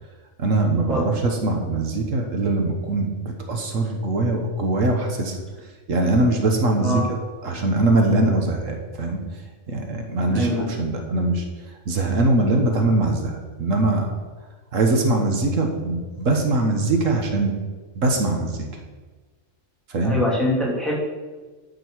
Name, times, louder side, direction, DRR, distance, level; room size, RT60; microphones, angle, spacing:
voice 1, 0.4-5.3 5.9-7.0 7.4-9.2 9.7-11.4 11.9-14.2 14.7-17.5 17.9-18.7 19.9-20.2, right 2 dB, 85° right, 3 dB, 1.6 m, -22 dB
voice 2, 6.8-7.1 10.3-10.7 20.0-21.0, equal, ahead, -5 dB, 2.8 m, -24 dB
12.0 x 5.3 x 6.3 m, 1.3 s
omnidirectional pair, 1.3 m